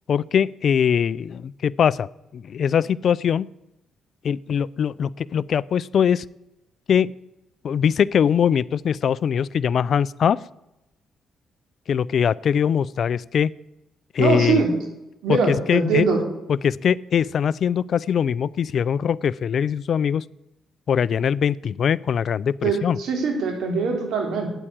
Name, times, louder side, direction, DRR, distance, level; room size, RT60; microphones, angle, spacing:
voice 1, 0.1-3.5 4.2-6.2 6.9-7.1 7.6-10.4 11.9-13.5 14.1-14.6 15.3-16.1 16.5-20.2 20.9-23.0, left 8 dB, 55° left, 22 dB, 0.3 m, -22 dB
voice 2, 14.2-14.7 15.2-16.2 22.6-24.5, right 5 dB, 75° right, 3 dB, 3.1 m, -22 dB
9.1 x 8.9 x 8.6 m, 0.91 s
cardioid pair, 90°, 0 cm